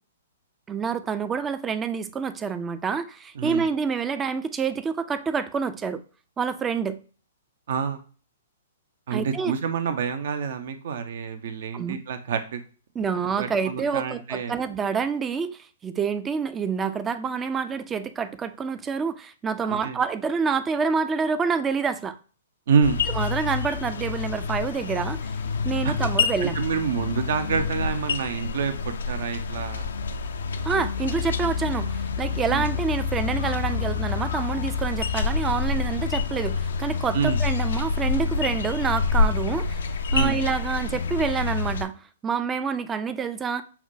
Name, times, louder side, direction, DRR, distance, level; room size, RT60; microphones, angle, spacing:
voice 1, 0.7-6.0 6.4-7.0 9.1-9.5 11.7-12.0 13.0-22.2 23.1-25.3 25.6-26.6 30.6-39.8 40.1-43.6, right 5 dB, 15° right, 0.3 m, -27 dB
voice 2, 3.4-3.7 7.7-8.0 9.1-12.6 13.4-14.6 19.6-20.0 22.7-23.0 25.8-25.9 26.4-29.9 32.5-32.6 37.1-37.4 40.1-40.4, right 6 dB, 65° right, 0.6 m, -27 dB
sound 1, 22.8-41.9, left 5 dB, 75° left, 0.4 m, -27 dB
5.7 x 2.2 x 2.5 m
hypercardioid pair, 125°, 0 cm